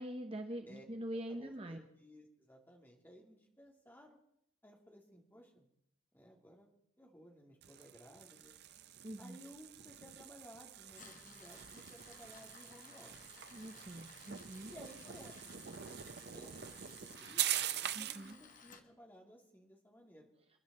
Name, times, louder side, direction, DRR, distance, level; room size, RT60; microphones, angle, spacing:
voice 1, 0.0-1.8 9.0-9.4 13.5-14.7 17.9-18.4, right 1 dB, 25° right, 5 dB, 0.9 m, -44 dB
voice 2, 1.3-4.2 4.6-5.7 6.1-6.7 7.0-8.5 9.2-13.1 14.7-20.3, equal, 10° left, 0 dB, 2.7 m, -58 dB
sound 1, 7.6-18.3, right 11 dB, 50° right, 0.6 m, -43 dB
Tools, 10.8-18.8, left 5 dB, 40° left, 1.5 m, -58 dB
28.0 x 11.0 x 4.3 m, 0.73 s
head